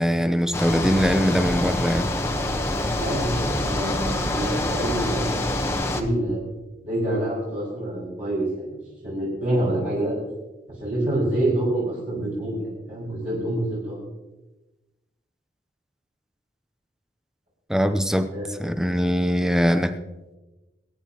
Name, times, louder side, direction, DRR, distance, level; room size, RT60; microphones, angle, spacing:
voice 1, 0.0-2.1 17.7-20.0, equal, 5° right, 9 dB, 0.7 m, -22 dB
sound 1, 0.5-6.0, left 1 dB, 15° left, 1.0 m, -26 dB
voice 2, 2.9-5.4 5.8-6.4 6.8-8.8 9.0-10.2 10.8-14.0 18.3-18.7, right 1 dB, 50° right, -8 dB, 5.2 m, -27 dB
23.5 x 10.0 x 3.0 m, 1.1 s
head